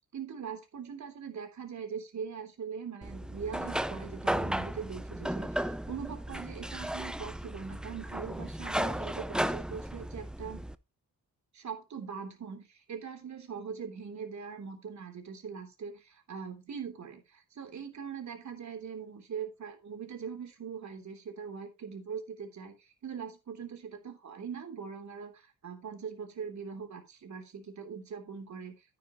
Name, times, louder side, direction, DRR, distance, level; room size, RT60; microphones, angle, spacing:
voice 1, 0.1-10.6 11.5-28.7, right 6 dB, 50° right, 6 dB, 3.2 m, -41 dB
sound 1, 3.0-10.7, right 1 dB, ahead, 0.4 m, -35 dB
10.5 x 9.4 x 3.0 m, 0.24 s
cardioid pair, 95°, 37 cm